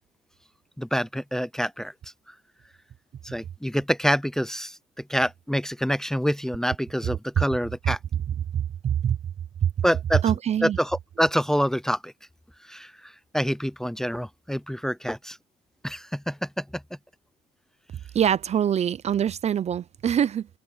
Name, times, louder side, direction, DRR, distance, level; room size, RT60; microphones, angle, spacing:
voice 1, 0.8-1.9 3.2-4.8 5.1-8.0 9.8-10.2 10.6-12.1 12.6-15.4 15.8-16.8, equal, 5° left, 0.7 m, -26 dB
voice 2, 8.5-9.2 9.6-9.7 10.2-10.8 18.1-20.5, right 9 dB, 40° right, 0.6 m, -24 dB
cardioid pair, 110°, 17 cm